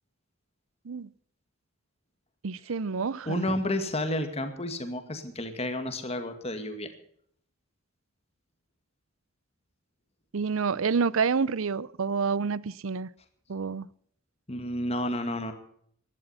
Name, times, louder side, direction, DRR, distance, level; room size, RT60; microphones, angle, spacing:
voice 1, 2.4-3.4 10.3-13.1 13.5-13.9, right 5 dB, 70° right, 0.6 m, -28 dB
voice 2, 3.3-6.9 14.5-15.5, left 1 dB, 30° left, 2.0 m, -31 dB
16.0 x 12.0 x 5.6 m
head